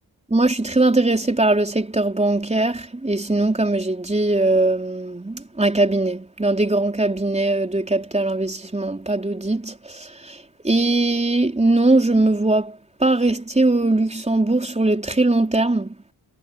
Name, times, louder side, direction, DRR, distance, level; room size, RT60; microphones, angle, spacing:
voice 1, 0.3-16.0, right 2 dB, 15° right, 3.9 m, -20 dB
cardioid pair, 55°, 40 cm